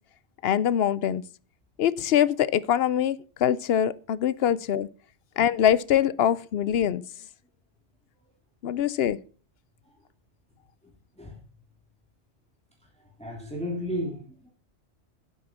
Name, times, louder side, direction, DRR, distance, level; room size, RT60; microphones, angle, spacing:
voice 1, 0.4-1.2 1.8-4.9 5.4-7.0 8.6-9.2, left 10 dB, 65° left, 0.8 m, -23 dB
voice 2, 13.0-14.5, equal, 5° left, 2.7 m, -34 dB
9.3 x 8.0 x 5.9 m
omnidirectional pair, 1.2 m